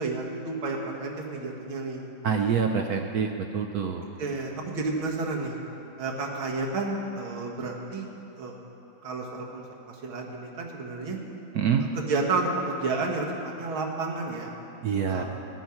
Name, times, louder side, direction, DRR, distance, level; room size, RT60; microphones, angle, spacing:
voice 1, 0.0-2.1 4.2-5.6 6.0-8.1 8.4-8.5 9.0-11.2 12.0-14.5 15.1-15.2, right 3 dB, 85° right, -1 dB, 2.2 m, -31 dB
voice 2, 2.2-4.1 11.5-11.8 14.8-15.2, right 6 dB, 70° right, 4 dB, 0.9 m, -26 dB
13.5 x 5.8 x 9.4 m, 2.9 s
omnidirectional pair, 2.2 m